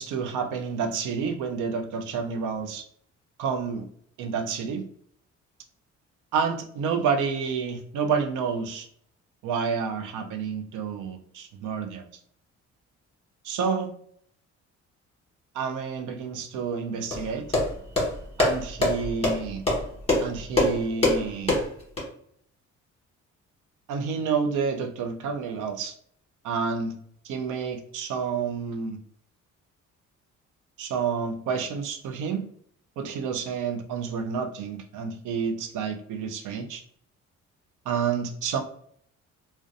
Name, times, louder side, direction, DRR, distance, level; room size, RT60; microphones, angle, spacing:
voice 1, 0.0-2.8 3.4-3.9 4.2-4.8 6.3-8.9 9.4-12.0 13.4-13.9 15.5-17.4 18.4-19.6 20.2-21.6 23.9-25.9 26.4-26.9 27.2-29.0 30.8-32.4 33.0-36.8 37.9-38.6, right 6 dB, 85° right, 6 dB, 0.5 m, -29 dB
sound 1, 17.1-22.0, left 2 dB, 20° left, 1.1 m, -25 dB
2.5 x 2.2 x 2.5 m, 0.62 s
cardioid pair, 90°, 30 cm